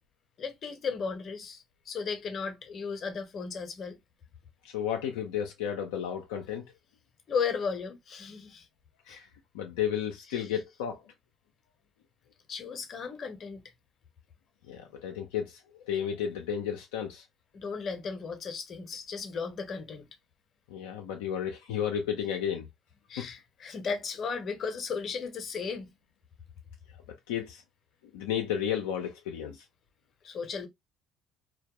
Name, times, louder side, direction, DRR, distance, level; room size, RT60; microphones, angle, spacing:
voice 1, 0.4-4.0 7.3-8.7 9.1-9.2 12.5-13.6 17.5-20.1 23.1-25.9 30.2-30.7, left 5 dB, 50° left, 0.7 m, -35 dB
voice 2, 4.6-6.6 9.1-9.3 9.5-11.0 14.7-17.2 20.7-22.7 23.2-23.3 27.1-27.6 28.1-29.6, left 9 dB, 85° left, 0.4 m, -33 dB
2.2 x 2.1 x 2.9 m
hypercardioid pair, 65°, 0 cm